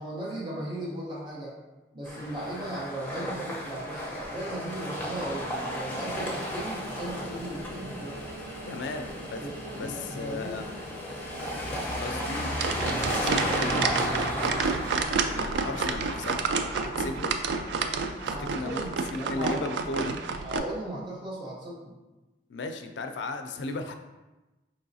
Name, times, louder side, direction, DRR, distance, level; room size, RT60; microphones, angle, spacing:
voice 1, 0.0-1.5 1.9-8.2 9.3-9.5 9.8-10.6 18.2-19.7 20.4-22.0, right 1 dB, 25° right, -7 dB, 0.9 m, -37 dB
sound 1, 2.0-19.0, equal, 10° left, 0.7 m, -34 dB
voice 2, 8.7-9.4 9.7-10.7 12.0-13.8 14.9-16.4 17.0-17.4 18.3-18.8 19.1-20.2 22.5-23.9, left 2 dB, 80° left, 6 dB, 0.4 m, -36 dB
sound 2, 12.5-20.6, right 4 dB, 70° right, 0.3 m, -29 dB
4.6 x 3.0 x 2.7 m, 1.1 s
head